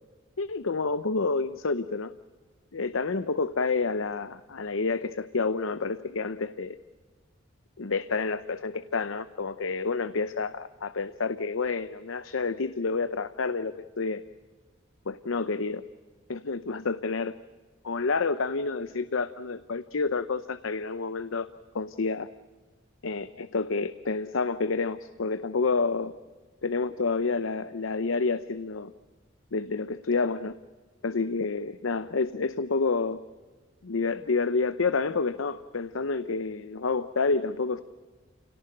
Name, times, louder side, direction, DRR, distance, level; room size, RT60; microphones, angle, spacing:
voice 1, 0.4-2.1 2.7-6.8 7.8-14.2 15.1-15.8 16.3-17.3 17.8-21.5 21.7-22.3 23.0-26.1 26.6-28.9 29.5-30.5 31.0-33.2 33.8-37.8, left 4 dB, 90° left, 13 dB, 0.8 m, -29 dB
29.0 x 18.0 x 8.9 m, 1.4 s
head